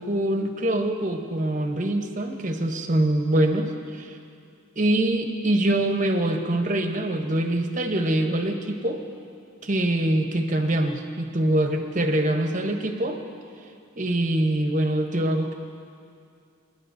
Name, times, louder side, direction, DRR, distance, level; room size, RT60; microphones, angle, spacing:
voice 1, 0.0-4.2 4.8-9.0 9.6-13.2 14.0-15.5, right 1 dB, 40° right, 4 dB, 0.9 m, -24 dB
28.5 x 11.0 x 2.6 m, 2.4 s
head